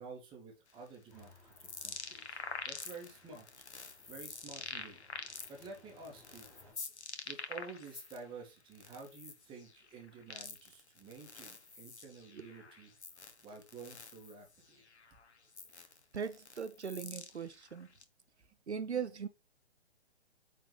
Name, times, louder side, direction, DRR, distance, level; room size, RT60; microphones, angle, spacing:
voice 1, 0.0-3.5 3.8-5.0 5.5-6.5 7.3-12.9 13.4-14.8, right 4 dB, 15° right, 2.1 m, -51 dB
sound 1, 0.7-8.2 8.6-18.0, left 4 dB, 70° left, 1.4 m, -47 dB
sound 2, 1.1-6.7, left 2 dB, 5° left, 3.7 m, -63 dB
voice 2, 16.1-17.9 18.7-19.3, right 7 dB, 75° right, 0.9 m, -39 dB
9.0 x 4.7 x 3.3 m
figure-of-eight pair, 130°, 34 cm